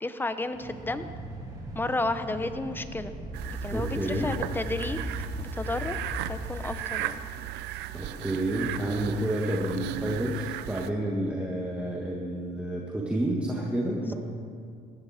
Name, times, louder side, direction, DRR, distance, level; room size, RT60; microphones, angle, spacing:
voice 1, 0.0-1.1 1.7-3.1 3.6-5.0 5.4-6.0 6.3-7.2 14.0-14.1, left 2 dB, 10° left, 10 dB, 0.9 m, -32 dB
sound 1, 0.5-6.8, equal, 20° right, 3.9 m, -38 dB
sound 2, 3.3-10.9, right 13 dB, 90° right, 0.6 m, -36 dB
voice 2, 3.7-4.3 7.9-14.1, right 1 dB, 5° right, -3 dB, 1.7 m, -29 dB
19.5 x 14.5 x 4.4 m, 2.2 s
cardioid pair, 110°, 17 cm